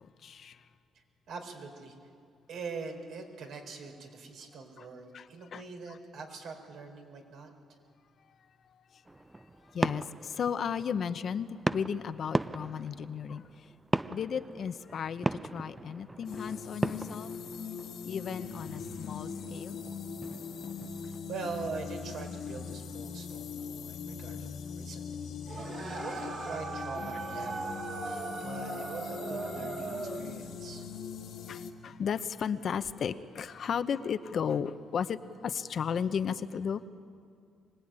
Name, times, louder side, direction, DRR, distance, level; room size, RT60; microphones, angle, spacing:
voice 1, 0.2-0.5 5.1-5.2 5.5-5.6 9.7-10.0 10.4-13.4 14.1-15.3 15.5-17.3 18.0-19.8 31.5-35.2 35.4-36.9, left 7 dB, 55° left, 11 dB, 0.9 m, -34 dB
voice 2, 0.9-1.9 2.5-7.5 21.0-30.8, right 4 dB, 75° right, 3 dB, 4.2 m, -43 dB
sound 1, 9.1-21.2, right 2 dB, 15° right, 0.5 m, -38 dB
sound 2, 16.2-31.7, left 6 dB, 75° left, 2.0 m, -41 dB
sound 3, 25.5-30.3, right 3 dB, 50° right, 2.9 m, -38 dB
24.0 x 19.0 x 9.0 m, 2.3 s
cardioid pair, 90°, 0 cm